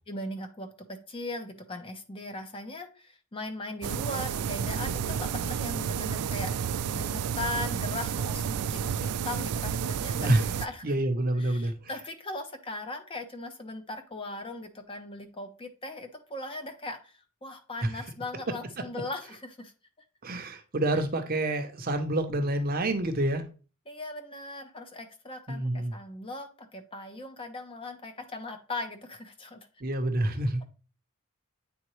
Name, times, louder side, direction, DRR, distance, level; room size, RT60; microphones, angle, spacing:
voice 1, 0.1-6.6 6.9-10.9 11.4-19.7 23.9-29.7, left 2 dB, 25° left, 0.6 m, -39 dB
sound 1, 3.8-10.7, right 7 dB, 90° right, 0.4 m, -31 dB
voice 2, 10.8-11.7 17.8-17.9 20.2-23.4 25.5-25.9 29.8-30.7, right 1 dB, 40° right, 0.7 m, -27 dB
8.7 x 3.7 x 3.1 m
head